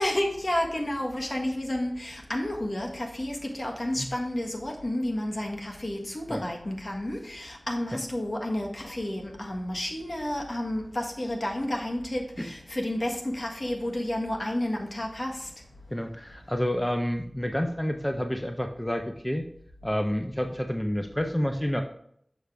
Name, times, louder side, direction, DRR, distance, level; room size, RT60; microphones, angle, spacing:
voice 1, 0.0-15.5, left 1 dB, 60° left, 1.5 m, -31 dB
voice 2, 15.9-19.4 19.8-21.8, equal, 15° left, 0.7 m, -29 dB
6.6 x 6.4 x 3.4 m
wide cardioid pair, 55°, 0 cm